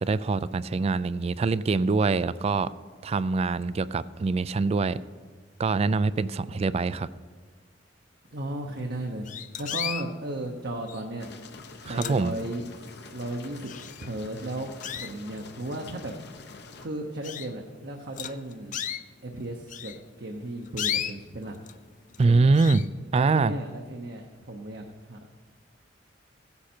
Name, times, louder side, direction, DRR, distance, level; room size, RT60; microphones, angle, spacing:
voice 1, 0.0-2.7 3.0-5.0 5.6-7.1 11.9-12.4 22.2-22.8 23.1-23.5, right 3 dB, 35° right, 17 dB, 0.3 m, -24 dB
voice 2, 8.3-9.3 9.6-11.3 11.8-13.7 14.0-16.1 16.4-16.5 16.8-18.8 19.2-19.9 20.2-21.6 22.2-22.6 23.2-25.4, right 1 dB, 60° right, 2 dB, 0.9 m, -35 dB
sound 1, 8.6-8.7 9.2-10.1 10.9-11.2 11.7-12.6 13.1-13.2 13.6-14.3 14.8-15.5 16.2-16.3 16.7-16.8 17.2-17.5 18.1-19.0 19.7-21.8 22.1-22.3 22.5-22.9, left 10 dB, 45° left, 0.4 m, -34 dB
sound 2, 11.2-16.9, left 4 dB, 60° left, 0.9 m, -46 dB
15.5 x 9.7 x 4.4 m, 1.5 s
head